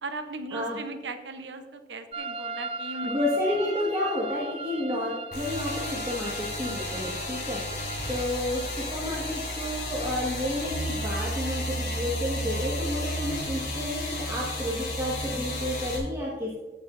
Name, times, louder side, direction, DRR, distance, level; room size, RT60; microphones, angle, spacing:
voice 1, 0.0-3.1, right 2 dB, 80° right, 8 dB, 0.9 m, -38 dB
sound 1, 2.1-11.2, right 3 dB, 30° right, 0.4 m, -39 dB
voice 2, 3.0-16.5, left 1 dB, 15° right, -6 dB, 1.6 m, -31 dB
sound 2, 5.3-16.0, left 1 dB, 60° left, 3.5 m, -32 dB
15.5 x 8.7 x 2.6 m, 1.3 s
head